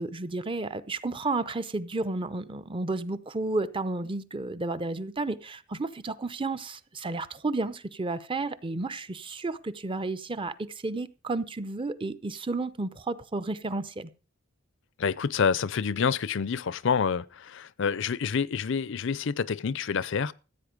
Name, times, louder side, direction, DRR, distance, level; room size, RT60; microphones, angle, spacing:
voice 1, 0.0-14.1, right 3 dB, 25° right, 0.7 m, -32 dB
voice 2, 15.0-20.3, left 6 dB, 65° left, 0.5 m, -28 dB
15.0 x 8.6 x 5.1 m
head